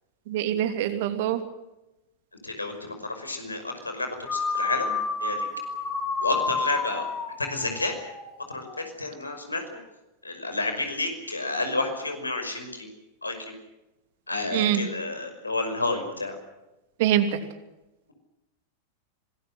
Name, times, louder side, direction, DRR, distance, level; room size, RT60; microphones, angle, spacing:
voice 1, 0.3-1.4 14.5-14.8 17.0-17.4, right 11 dB, 50° right, 8 dB, 2.9 m, -24 dB
voice 2, 2.4-4.9 5.2-5.5 6.2-7.1 7.4-7.9 8.5-9.8 10.2-12.9 13.2-13.5 14.3-16.4, left 2 dB, 80° left, 5 dB, 5.6 m, -30 dB
sound 1, 4.2-8.8, left 4 dB, 25° left, 6.6 m, -30 dB
25.5 x 20.0 x 7.9 m, 0.98 s
figure-of-eight pair, 90°, 0 cm